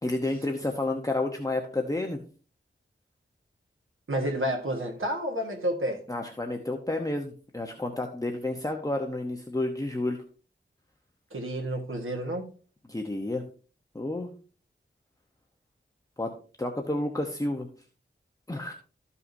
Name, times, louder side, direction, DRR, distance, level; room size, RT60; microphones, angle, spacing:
voice 1, 0.0-2.2 6.1-10.2 12.9-13.4 13.9-14.3 16.2-16.3 16.6-17.7 18.5-18.7, left 2 dB, 15° left, 1.0 m, -30 dB
voice 2, 4.1-6.0 11.3-12.5, right 1 dB, 90° right, 1.4 m, -30 dB
14.0 x 5.6 x 2.7 m
wide cardioid pair, 75°, 20 cm